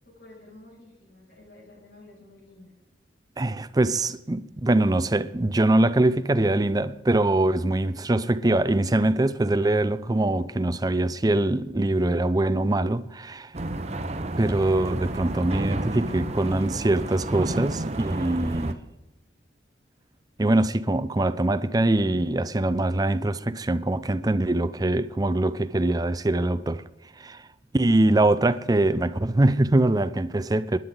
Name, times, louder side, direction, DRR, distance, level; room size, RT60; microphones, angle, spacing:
voice 1, 0.0-2.7 7.8-8.1 25.8-25.9, left 2 dB, 70° left, 7.1 m, -51 dB
voice 2, 3.4-13.5 14.4-18.8 20.4-26.8 27.2-27.5 27.7-30.8, right 2 dB, 20° right, 0.5 m, -23 dB
sound 1, 13.5-18.7, right 2 dB, 35° right, 0.8 m, -31 dB
26.0 x 10.5 x 3.9 m
head